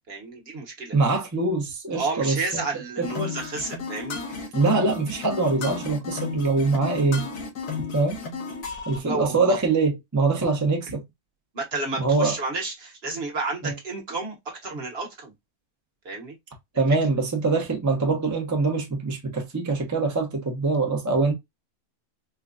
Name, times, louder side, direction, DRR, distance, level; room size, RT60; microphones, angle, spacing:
voice 1, 0.1-0.9 1.9-4.5 8.9-9.6 10.9-11.0 11.5-15.3 16.0-16.3 16.9-17.0, right 3 dB, 45° right, 1.2 m, -31 dB
voice 2, 0.9-2.6 3.0-3.3 4.5-7.3 7.9-8.2 8.9-11.0 12.0-12.3 13.6-13.7 16.7-21.3, right 3 dB, 15° right, 0.6 m, -23 dB
sound 1, 3.0-9.0, left 5 dB, 80° left, 1.7 m, -33 dB
4.4 x 2.3 x 2.4 m
omnidirectional pair, 1.6 m